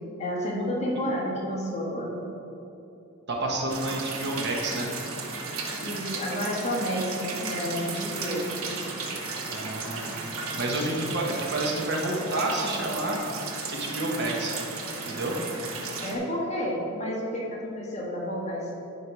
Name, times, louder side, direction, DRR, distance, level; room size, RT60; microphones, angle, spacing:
voice 1, 0.2-2.2 5.8-8.5 16.0-18.7, equal, 30° left, -5 dB, 1.7 m, -30 dB
voice 2, 3.3-4.9 9.5-13.2 13.5-14.6 15.1-15.3, right 1 dB, 55° right, -1 dB, 1.2 m, -29 dB
sound 1, 3.7-16.2, right 4 dB, 80° right, 1.1 m, -35 dB
9.8 x 4.7 x 4.8 m, 2.8 s
head